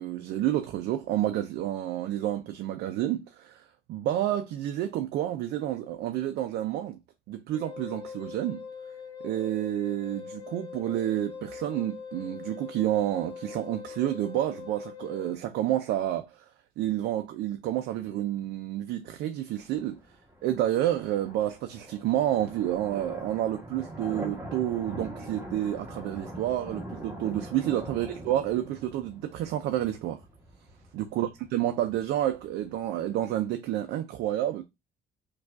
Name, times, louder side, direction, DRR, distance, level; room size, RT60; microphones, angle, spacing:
voice 1, 0.0-7.0 7.3-8.7 9.2-16.5 16.8-20.0 20.4-30.2 30.9-34.6, right 12 dB, 75° right, 0.4 m, -29 dB
Wind instrument woodwind instrument, 7.5-15.4, left 6 dB, 30° left, 1.1 m, -42 dB
sound 1, 19.6-33.5, right 1 dB, 15° right, 1.0 m, -43 dB
4.5 x 2.3 x 2.3 m
cardioid pair, 110°, 17 cm